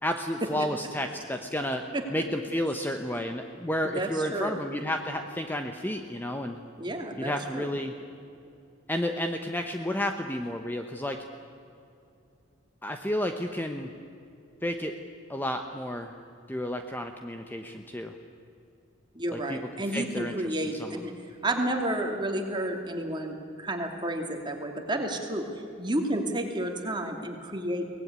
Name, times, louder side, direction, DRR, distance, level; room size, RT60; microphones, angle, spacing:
voice 1, 0.0-1.8 2.1-6.6 7.2-7.9 8.9-11.2 12.8-13.9 14.6-14.9 15.3-16.1 16.5-18.1 19.3-19.6 19.9-20.3 20.8-21.0, equal, 10° left, 5 dB, 0.9 m, -31 dB
voice 2, 3.8-4.6 6.8-7.7 19.1-27.8, right 1 dB, 25° right, 3 dB, 2.7 m, -31 dB
23.5 x 18.5 x 9.6 m, 2.6 s
head